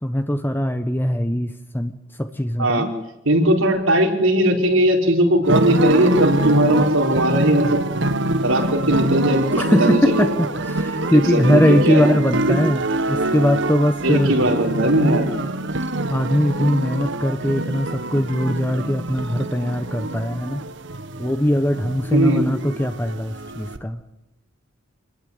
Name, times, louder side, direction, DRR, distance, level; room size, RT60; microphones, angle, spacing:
voice 1, 0.0-1.9 2.2-2.9 9.6-14.4 16.1-20.6 21.2-24.0, equal, 10° left, 8 dB, 1.0 m, -21 dB
voice 2, 3.2-7.8 8.4-10.3 11.1-12.1 12.5-12.6 14.0-15.2 22.1-22.4, right 1 dB, 80° right, 3 dB, 4.8 m, -18 dB
vhs artifacts, 5.4-23.8, right 2 dB, 60° right, 1.3 m, -25 dB
26.5 x 20.5 x 9.5 m, 0.91 s
head